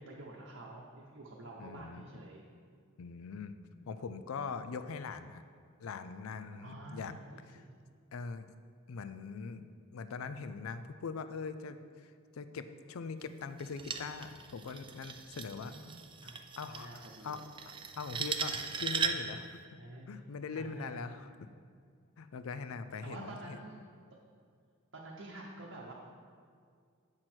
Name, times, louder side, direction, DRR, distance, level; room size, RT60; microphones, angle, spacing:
voice 1, 0.0-2.5 6.6-7.7 15.4-17.5 19.7-20.2 20.5-21.0 23.0-23.9 24.9-25.9, right 2 dB, 65° right, -3 dB, 0.8 m, -49 dB
voice 2, 1.6-2.0 3.0-3.5 3.9-5.4 5.8-7.1 7.5-7.6 8.1-8.5 8.9-9.6 9.9-12.1 12.3-15.7 16.6-17.4 17.7-19.5 20.1-21.3 22.2-23.6, left 5 dB, 85° left, 11 dB, 0.4 m, -42 dB
sound 1, 13.6-19.4, right 5 dB, 25° right, 0.4 m, -38 dB
7.8 x 6.1 x 4.4 m, 2.1 s
head